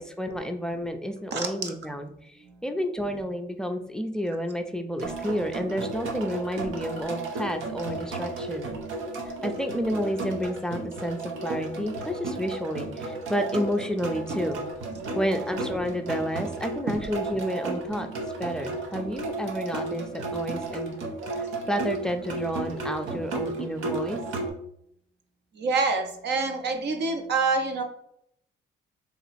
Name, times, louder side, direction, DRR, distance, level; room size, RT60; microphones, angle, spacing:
voice 1, 0.0-2.1 2.6-8.7 9.4-14.6 15.1-18.1 18.4-21.0 21.7-24.2, equal, 5° left, 6 dB, 0.4 m, -30 dB
voice 2, 1.3-1.7 2.5-2.6 15.0-15.1 25.6-27.8, right 4 dB, 60° right, 4 dB, 0.7 m, -27 dB
sound 1, 5.0-24.5, right 2 dB, 85° right, 0.8 m, -34 dB
3.0 x 2.9 x 4.1 m, 0.72 s
cardioid pair, 90°, 20 cm